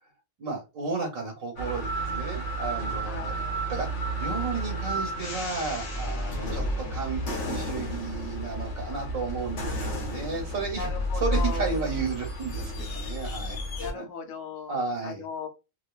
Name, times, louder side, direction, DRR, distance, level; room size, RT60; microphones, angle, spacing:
voice 1, 0.4-3.4 3.7-3.9 4.2-10.9 11.1-13.6 13.9-14.0 14.7-15.2, right 4 dB, 80° right, 1 dB, 1.2 m, -33 dB
sound 1, 1.6-13.9, right 1 dB, 65° left, 1.1 m, -31 dB
voice 2, 3.0-3.6 10.7-11.7 13.8-14.7 15.0-15.5, left 5 dB, 90° left, 4 dB, 1.1 m, -37 dB
2.5 x 2.5 x 2.2 m, 0.27 s
omnidirectional pair, 1.4 m